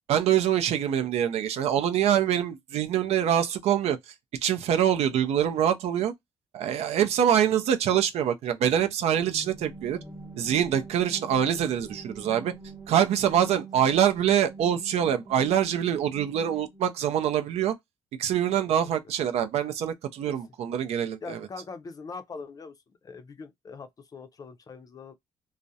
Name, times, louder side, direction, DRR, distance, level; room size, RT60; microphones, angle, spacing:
voice 1, 0.1-4.0 4.4-6.1 6.5-10.0 10.4-12.5 12.9-17.8 18.2-21.4, right 9 dB, 70° right, 0.5 m, -25 dB
sound 1, 9.2-17.0, right 3 dB, 20° right, 0.9 m, -44 dB
voice 2, 21.2-22.8 23.0-25.1, left 4 dB, 35° left, 0.5 m, -42 dB
2.3 x 2.0 x 2.6 m
cardioid pair, 110°, 11 cm